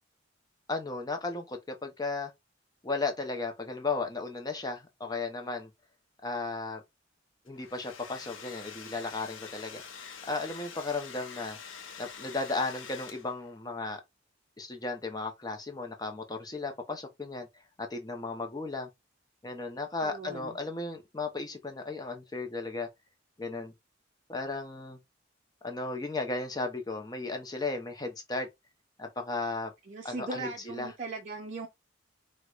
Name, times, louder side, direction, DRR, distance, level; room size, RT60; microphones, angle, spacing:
voice 1, 0.7-2.3 2.8-5.7 6.2-6.8 7.5-9.8 10.3-11.6 12.0-14.0 14.6-17.5 17.8-18.9 19.4-22.9 23.4-23.7 24.3-25.0 25.6-28.5 29.0-29.7 30.0-30.9, left 3 dB, 20° left, 0.6 m, -35 dB
Domestic sounds home sounds, 7.5-13.5, left 6 dB, 85° left, 0.6 m, -46 dB
voice 2, 20.0-20.6 29.9-31.7, right 3 dB, 40° right, 0.5 m, -39 dB
4.5 x 2.1 x 2.3 m
head